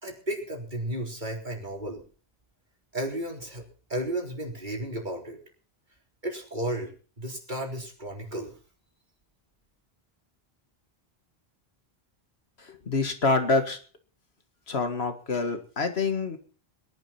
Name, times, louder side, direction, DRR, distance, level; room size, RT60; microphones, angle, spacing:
voice 1, 0.0-2.0 2.9-3.6 3.9-5.4 6.2-6.9 7.2-8.5, right 1 dB, 50° right, 1 dB, 4.0 m, -33 dB
voice 2, 12.6-13.8 14.7-16.4, left 3 dB, 85° left, 7 dB, 2.1 m, -26 dB
21.5 x 11.0 x 4.3 m, 0.40 s
omnidirectional pair, 1.0 m